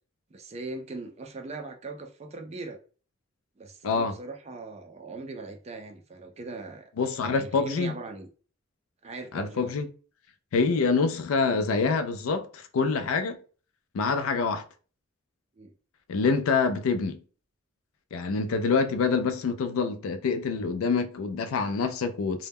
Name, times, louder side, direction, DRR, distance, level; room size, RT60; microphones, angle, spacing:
voice 1, 0.3-2.8 3.6-6.9 7.3-8.3 9.0-9.7 10.6-10.7 15.6-15.7, right 3 dB, 30° right, 0.3 m, -40 dB
voice 2, 3.8-4.1 7.0-7.9 9.3-9.9 10.5-13.4 13.9-14.6 16.1-17.2 18.1-22.5, left 4 dB, 75° left, 0.3 m, -26 dB
2.1 x 2.1 x 3.4 m
head